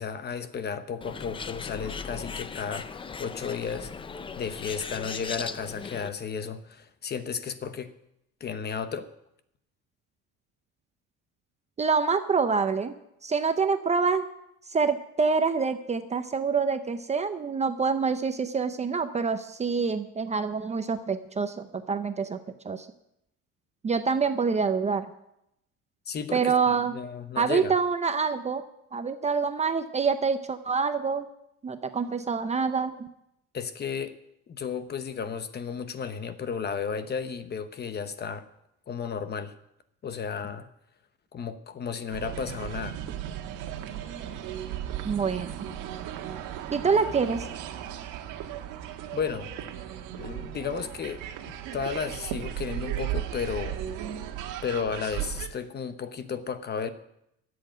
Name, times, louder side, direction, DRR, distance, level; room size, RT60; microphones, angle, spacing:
voice 1, 0.0-3.9 4.4-7.9 8.4-9.1 26.1-27.7 33.5-34.2 34.5-38.5 38.9-39.5 40.0-40.7 41.3-43.0 49.1-49.5 50.2-51.2 51.7-53.8 54.6-56.9, left 6 dB, 30° left, 11 dB, 1.0 m, -33 dB
Bird, 1.0-6.1, left 5 dB, 15° left, 0.5 m, -38 dB
voice 2, 11.8-12.9 13.2-14.3 14.7-22.4 22.6-22.9 23.8-25.1 26.3-27.0 27.4-28.6 28.9-31.3 31.6-33.1 45.0-45.7 46.7-47.5, right 5 dB, 20° right, 9 dB, 0.7 m, -26 dB
sound 1, 42.1-55.5, right 11 dB, 80° right, 1.5 m, -36 dB
13.0 x 7.9 x 9.1 m, 0.80 s
cardioid pair, 145°, 31 cm